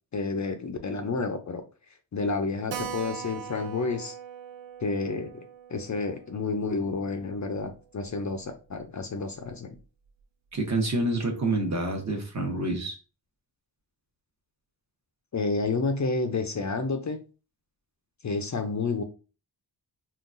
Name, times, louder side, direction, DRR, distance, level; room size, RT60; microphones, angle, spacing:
voice 1, 0.1-1.6 2.1-4.1 4.8-9.8 15.3-17.2 18.2-19.0, left 3 dB, 45° left, 0.5 m, -30 dB
Keyboard (musical), 2.7-7.8 8.0-8.1 8.4-8.5 8.8-8.9 9.4-9.8, right 8 dB, 80° right, 0.5 m, -41 dB
voice 2, 10.5-13.0, right 2 dB, 40° right, 0.9 m, -27 dB
3.7 x 2.3 x 2.5 m
wide cardioid pair, 70°, 43 cm